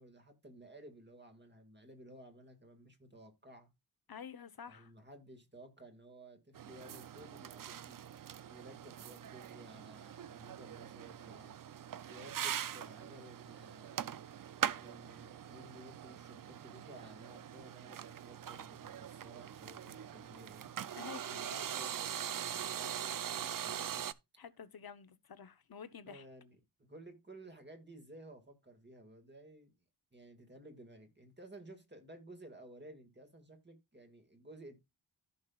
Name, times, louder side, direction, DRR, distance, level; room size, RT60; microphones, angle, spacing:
voice 1, 0.0-3.7 4.7-8.0 8.5-11.5 12.1-14.0 14.7-20.7 21.3-24.1 26.1-29.8 30.1-34.8, right 1 dB, 25° right, 1.9 m, -55 dB
voice 2, 4.1-4.9 20.9-21.6 24.4-26.2, left 7 dB, 50° left, 0.8 m, -50 dB
sound 1, 6.5-24.1, right 9 dB, 45° right, 0.5 m, -42 dB
14.5 x 5.5 x 2.3 m
wide cardioid pair, 95°, 46 cm